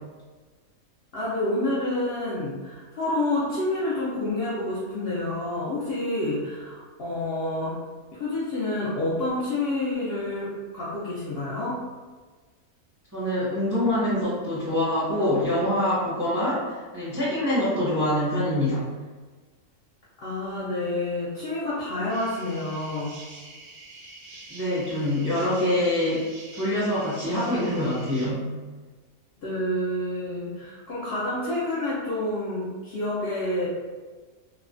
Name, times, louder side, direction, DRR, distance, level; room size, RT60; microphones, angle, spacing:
voice 1, 1.1-7.8 8.2-11.8 20.2-23.2 29.4-33.7, left 1 dB, 65° left, -8 dB, 0.6 m, -28 dB
voice 2, 13.1-18.8 24.5-26.2 26.5-28.5, left 1 dB, 20° right, -10 dB, 0.5 m, -25 dB
sound 1, 22.1-28.3, right 2 dB, 70° right, 0.9 m, -46 dB
3.0 x 2.0 x 2.4 m, 1.4 s
omnidirectional pair, 1.5 m